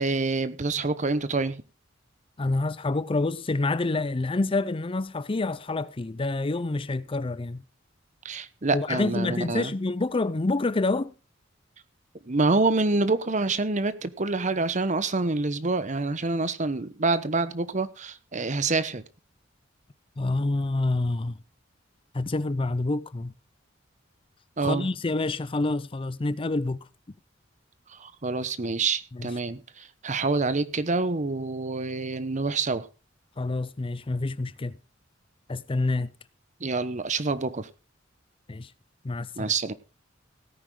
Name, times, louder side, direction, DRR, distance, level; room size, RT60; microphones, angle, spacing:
voice 1, 0.0-1.6 8.2-9.7 12.2-19.0 24.6-24.9 27.9-32.9 36.6-37.7 39.4-39.7, right 3 dB, 40° right, 1.0 m, -27 dB
voice 2, 2.4-7.6 8.7-11.1 20.2-21.4 22.1-23.3 24.6-26.8 29.1-29.3 33.4-34.8 35.5-36.1 38.5-38.7 39.0-39.5, left 2 dB, 25° left, 0.5 m, -27 dB
17.0 x 9.7 x 3.8 m
head